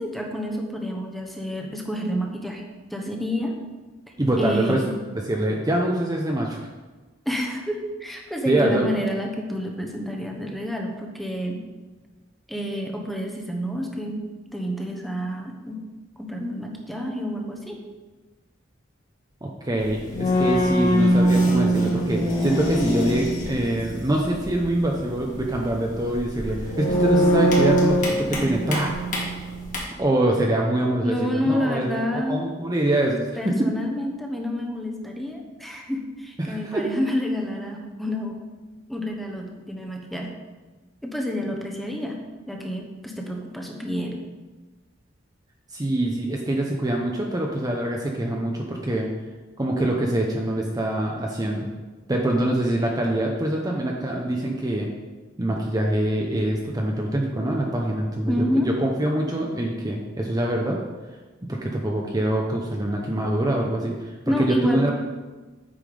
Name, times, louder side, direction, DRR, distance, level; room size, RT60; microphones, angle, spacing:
voice 1, 0.0-2.6 2.9-3.5 4.4-4.9 7.2-11.6 12.5-14.2 14.5-15.8 16.2-17.8 31.0-32.4 33.4-38.4 38.9-40.3 41.0-42.1 42.5-44.2 58.3-58.7 64.3-64.9, left 1 dB, ahead, 1 dB, 1.0 m, -28 dB
voice 2, 4.2-4.8 5.1-6.6 8.4-9.0 19.4-28.9 30.0-32.0 32.3-33.7 36.4-36.9 45.7-49.1 49.6-51.7 52.1-54.9 55.4-60.8 61.4-64.9, right 1 dB, 20° right, 0 dB, 0.7 m, -24 dB
sound 1, 19.8-29.8, equal, 40° left, 2.1 m, -23 dB
8.5 x 5.7 x 5.1 m, 1.3 s
head